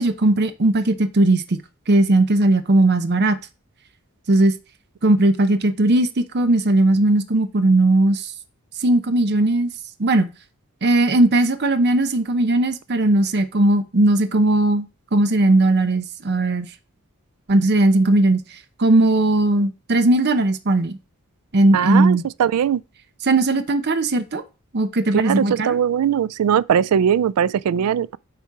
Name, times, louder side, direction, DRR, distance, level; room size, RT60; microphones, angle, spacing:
voice 1, 0.0-1.6 1.9-3.4 4.3-4.5 5.0-8.3 8.8-9.7 10.0-10.3 10.8-14.9 15.1-16.7 17.5-18.4 18.8-21.0 21.5-22.3 23.2-24.4 24.7-25.8, right 2 dB, 50° right, 0.7 m, -18 dB
voice 2, 21.7-22.8 25.3-28.2, right 8 dB, 90° right, 0.3 m, -20 dB
8.3 x 4.3 x 4.7 m
head